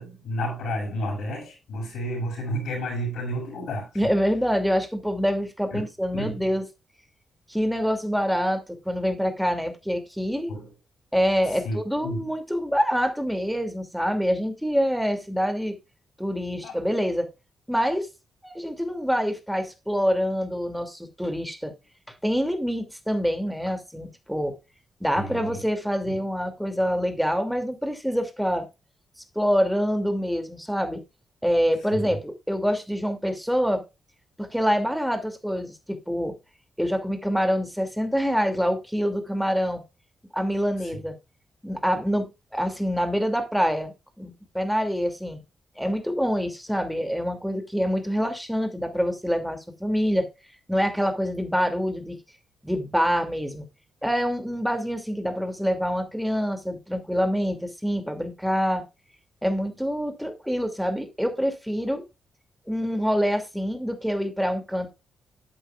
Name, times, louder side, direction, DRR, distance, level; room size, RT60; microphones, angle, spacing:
voice 1, 0.0-3.9 5.7-5.8 6.1-6.5 10.5-10.7 11.6-12.3 16.6-16.8 25.1-25.6 26.0-26.2 31.9-32.2 40.8-40.9, equal, 85° left, 5.8 m, -31 dB
voice 2, 3.9-6.6 7.5-10.5 11.1-15.8 16.2-17.3 17.7-18.1 18.4-21.7 22.2-24.6 25.0-28.7 29.3-31.0 31.4-33.8 34.4-36.4 36.8-39.8 40.3-41.2 41.6-43.9 44.2-45.4 45.8-50.3 50.7-52.2 52.6-53.7 54.0-58.8 59.4-62.0 62.7-64.9, equal, ahead, 2.6 m, -26 dB
11.5 x 8.1 x 2.4 m
cardioid pair, 75°, 0 cm